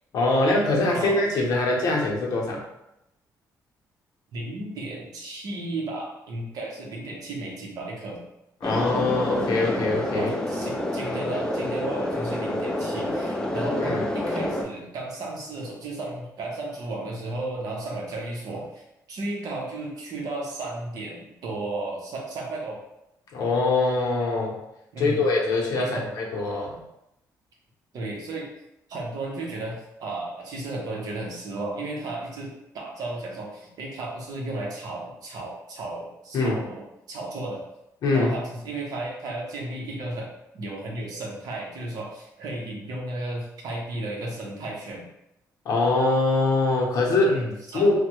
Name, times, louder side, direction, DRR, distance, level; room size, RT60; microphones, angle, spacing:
voice 1, 0.1-2.6 8.6-10.3 13.8-14.0 23.3-24.6 25.0-26.8 36.3-36.6 38.0-38.3 45.6-47.3 47.7-48.0, left 2 dB, 65° left, -2 dB, 0.7 m, -23 dB
voice 2, 4.3-8.2 10.1-18.8 19.1-22.8 24.9-25.3 25.8-26.1 27.9-28.5 28.9-37.6 38.1-40.3 40.5-45.0 47.2-47.9, right 2 dB, 65° right, -2 dB, 0.8 m, -34 dB
sound 1, 8.6-14.6, left 1 dB, 10° left, 0.3 m, -28 dB
3.1 x 2.1 x 3.0 m, 0.87 s
cardioid pair, 145°, 7 cm